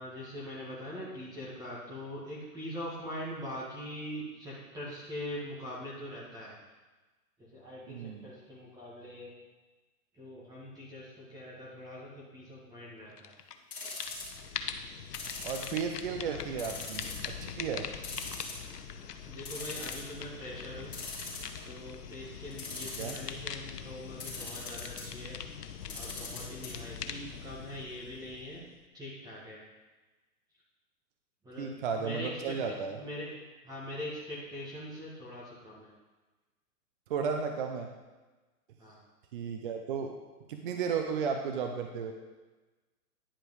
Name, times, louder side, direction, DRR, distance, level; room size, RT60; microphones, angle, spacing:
voice 1, 0.0-6.5 7.4-9.3 10.1-13.3 19.2-20.9 21.6-25.4 25.9-28.7 28.9-29.6 31.4-35.9 38.8-39.0, left 1 dB, 10° right, -7 dB, 1.5 m, -42 dB
voice 2, 7.9-8.3 15.4-17.9 23.0-23.1 31.6-33.0 37.1-37.9 39.3-40.2 40.5-42.1, right 6 dB, 35° right, 4 dB, 0.6 m, -34 dB
sound 1, 13.2-13.6 13.8-28.8, left 7 dB, 80° left, 0.9 m, -42 dB
sound 2, 13.7-14.4 15.1-16.1 16.6-17.3 17.6-17.7 18.0-18.8 19.2-19.3 19.4-20.1 20.9-21.8 22.5-23.3 24.2-25.0 25.8-26.7 27.0-27.1 27.3-27.4, left 4 dB, 15° left, 2.6 m, -41 dB
10.0 x 5.1 x 4.8 m, 1.2 s
hypercardioid pair, 140°, 47 cm